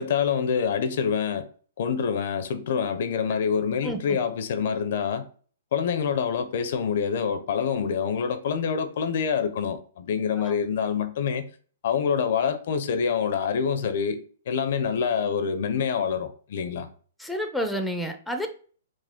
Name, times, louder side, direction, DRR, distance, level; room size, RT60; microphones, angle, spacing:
voice 1, 0.0-1.5 1.8-5.3 5.7-11.5 11.8-14.2 14.5-16.9, left 6 dB, 60° left, 0.6 m, -26 dB
voice 2, 3.8-4.2 10.4-10.5 17.2-18.5, equal, ahead, 0.6 m, -30 dB
5.1 x 2.0 x 3.6 m
hypercardioid pair, 130°, 0 cm